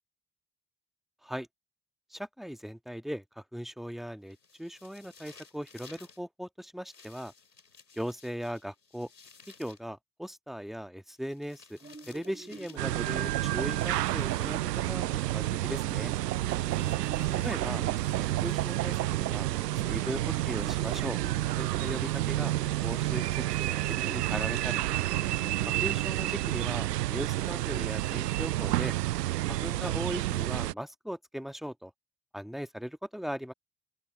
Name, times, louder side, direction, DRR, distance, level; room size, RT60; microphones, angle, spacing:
voice 1, 2.1-7.3 7.9-9.1 9.6-11.8 12.1-16.1 17.4-17.8 18.2-19.5 19.8-21.2 21.6-22.6 22.8-23.3 23.6-24.8 25.6-28.9 29.5-31.9 32.3-33.5, equal, ahead, 2.1 m, -38 dB
sound 1, 4.3-6.2 6.9-9.9 11.1-12.9 13.6-14.6 16.2-19.0, left 5 dB, 90° left, 4.5 m, -57 dB
sound 2, 11.8-27.9, right 3 dB, 15° right, 3.8 m, -48 dB
sound 3, 12.8-30.7, right 16 dB, 80° right, 0.7 m, -30 dB
open air
figure-of-eight pair, 40°, 47 cm